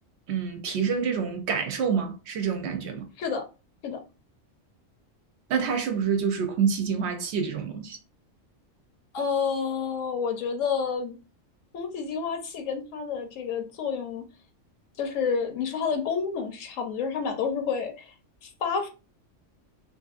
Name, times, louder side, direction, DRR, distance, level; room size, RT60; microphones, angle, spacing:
voice 1, 0.3-3.1 5.5-8.0, right 6 dB, 65° right, 0.8 m, -27 dB
voice 2, 9.1-11.2 11.7-14.3 15.0-18.1 18.4-18.9, left 6 dB, 80° left, 1.0 m, -29 dB
2.6 x 2.5 x 2.4 m
omnidirectional pair, 1.3 m